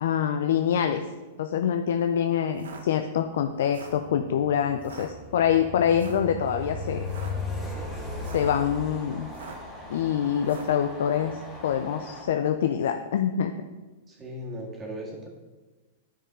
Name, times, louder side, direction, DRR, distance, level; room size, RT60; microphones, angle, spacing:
voice 1, 0.0-1.0 1.4-7.1 8.3-9.3 9.9-13.5, left 9 dB, 70° left, 7 dB, 0.4 m, -25 dB
sound 1, 2.5-2.8 3.6-4.0 4.8-5.1 5.9-6.3 7.0-7.3 8.1-8.5 9.3-9.7 10.4-10.8, right 4 dB, 85° right, 1.0 m, -44 dB
Train, 3.8-12.2, left 2 dB, 5° left, 1.9 m, -37 dB
voice 2, 14.1-15.3, equal, 20° right, -3 dB, 1.9 m, -37 dB
10.0 x 4.7 x 3.7 m, 1.3 s
hypercardioid pair, 125°, 0 cm